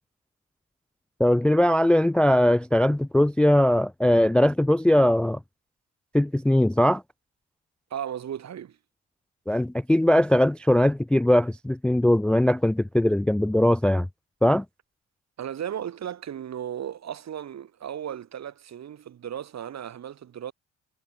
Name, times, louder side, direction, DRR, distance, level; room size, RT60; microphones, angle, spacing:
voice 1, 1.2-5.4 6.1-7.0 9.5-14.1 14.4-14.6, left 1 dB, 5° left, 0.3 m, -20 dB
voice 2, 7.9-8.8 15.4-20.5, right 9 dB, 60° right, 5.4 m, -35 dB
cardioid pair, 90°, 30 cm